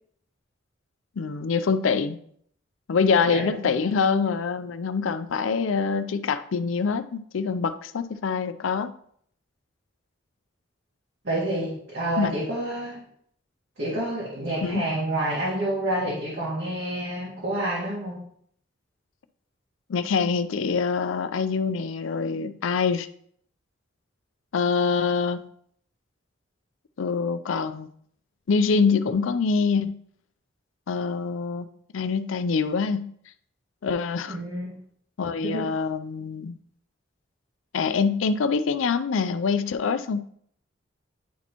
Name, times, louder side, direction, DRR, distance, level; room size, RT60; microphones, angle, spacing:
voice 1, 1.2-2.2 2.9-8.9 12.2-12.3 14.6-14.8 19.9-23.1 24.5-25.4 27.0-27.9 28.5-30.0 30.9-31.7 31.9-33.1 33.8-34.4 35.2-36.5 37.7-40.2, left 5 dB, 85° left, 12 dB, 0.4 m, -25 dB
voice 2, 3.2-3.8 11.2-13.0 13.8-18.2 34.3-34.8 35.4-35.7, right 1 dB, 60° right, -6 dB, 1.7 m, -29 dB
10.0 x 4.2 x 3.0 m, 0.65 s
head